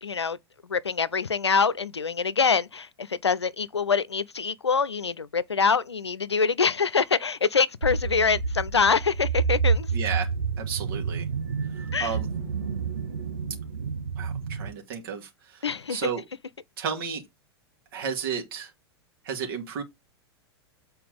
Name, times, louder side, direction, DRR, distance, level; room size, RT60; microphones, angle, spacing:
voice 1, 0.0-0.4 0.7-9.9 11.9-12.1 15.6-16.1, left 5 dB, 85° left, 0.6 m, -25 dB
sound 1, 7.8-14.7, right 5 dB, 75° right, 1.8 m, -29 dB
voice 2, 9.9-10.3 10.6-11.3 12.0-12.3 14.2-15.6 15.9-16.2 16.8-17.2 17.9-18.7 19.2-19.8, right 6 dB, 60° right, 2.3 m, -32 dB
7.5 x 4.4 x 5.1 m
figure-of-eight pair, 95°, 14 cm